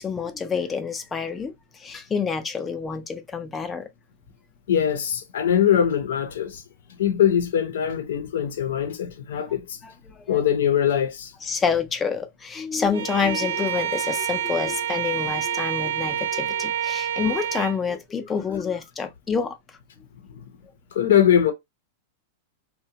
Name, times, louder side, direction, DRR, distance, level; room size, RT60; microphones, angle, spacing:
voice 1, 0.0-3.9 9.8-10.4 11.4-19.8, left 6 dB, 10° left, 0.3 m, -28 dB
voice 2, 4.7-6.6 6.9-9.8 10.3-11.3 20.9-21.5, left 9 dB, 80° left, 0.5 m, -22 dB
Bowed string instrument, 12.9-17.8, right 10 dB, 85° right, 0.4 m, -28 dB
2.7 x 2.1 x 2.7 m
supercardioid pair, 175°, 0 cm